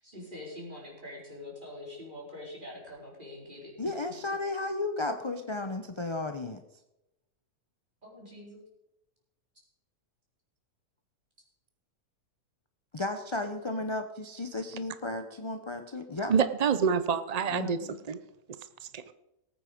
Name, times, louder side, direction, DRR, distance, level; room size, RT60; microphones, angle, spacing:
voice 1, 0.0-3.7 8.0-8.6, left 1 dB, 30° right, 4.6 m, -44 dB
voice 2, 3.8-6.6 12.9-16.3 17.5-18.0, left 2 dB, 30° left, 0.6 m, -34 dB
voice 3, 16.3-18.2 18.9-19.0, right 6 dB, 80° right, 0.3 m, -27 dB
19.0 x 8.9 x 5.2 m
omnidirectional pair, 1.7 m